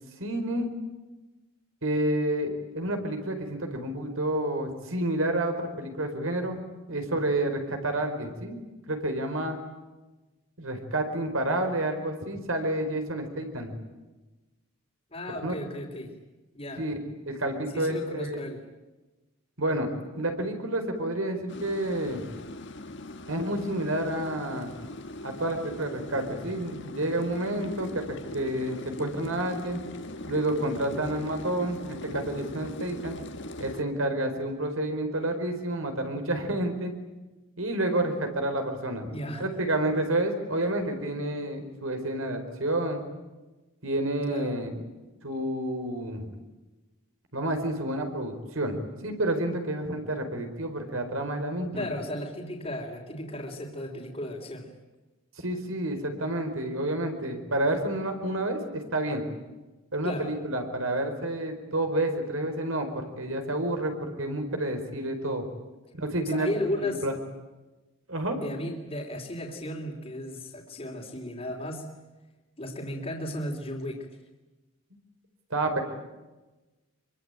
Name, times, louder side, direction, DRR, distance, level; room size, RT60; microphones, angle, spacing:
voice 1, 0.2-0.7 1.8-6.6 6.9-8.6 8.9-9.6 10.6-13.8 15.4-15.5 16.8-17.0 17.3-18.4 19.6-22.2 23.3-24.7 25.2-29.8 30.3-33.2 33.6-36.9 37.6-39.1 39.4-43.0 43.8-44.8 45.2-46.3 47.3-51.9 55.4-59.2 59.9-65.4 65.9-67.1 68.1-68.4 75.5-75.8, right 1 dB, 70° right, 5 dB, 4.6 m, -29 dB
voice 2, 15.1-16.2 16.5-16.8 17.7-18.6 39.1-39.6 44.3-44.6 51.7-54.7 60.0-60.3 66.2-67.0 68.4-71.9 72.6-74.1, left 1 dB, 30° left, -4 dB, 3.1 m, -35 dB
sound 1, 21.5-33.8, left 1 dB, 55° left, 1.6 m, -40 dB
25.5 x 23.5 x 9.1 m, 1.1 s
head